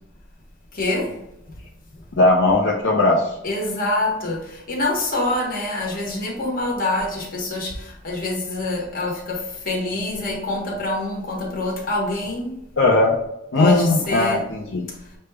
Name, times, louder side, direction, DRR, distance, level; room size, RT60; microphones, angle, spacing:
voice 1, 0.7-1.1 3.4-12.5 13.6-14.4, left 1 dB, 45° left, -2 dB, 1.2 m, -25 dB
voice 2, 2.2-3.3 12.8-13.1 13.5-14.8, left 2 dB, 65° left, -3 dB, 0.6 m, -18 dB
6.3 x 2.2 x 3.4 m, 0.83 s
head